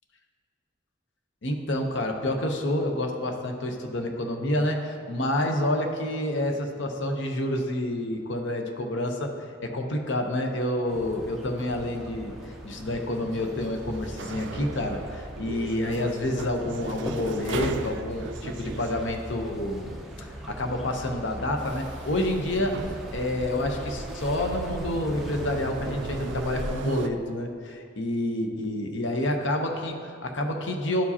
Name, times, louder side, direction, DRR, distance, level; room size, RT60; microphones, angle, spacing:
voice 1, 1.4-9.3 9.6-12.3 12.6-31.0, left 1 dB, 75° left, 3 dB, 0.8 m, -28 dB
sound 1, 10.9-26.8, equal, ahead, 0.4 m, -40 dB
sound 2, 10.9-27.1, right 4 dB, 70° right, 0.3 m, -39 dB
11.5 x 4.8 x 2.8 m, 2.1 s
head